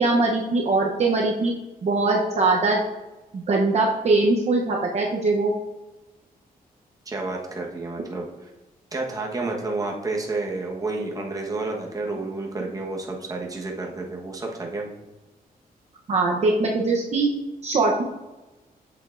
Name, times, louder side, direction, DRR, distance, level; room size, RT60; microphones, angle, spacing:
voice 1, 0.0-1.5 1.8-2.8 3.3-5.5 16.1-17.3 17.6-18.0, right 3 dB, 45° right, -1 dB, 0.9 m, -21 dB
voice 2, 7.0-8.5 8.9-14.9, right 3 dB, 25° right, -1 dB, 1.3 m, -30 dB
7.9 x 7.0 x 2.6 m, 1.1 s
wide cardioid pair, 135°, 16 cm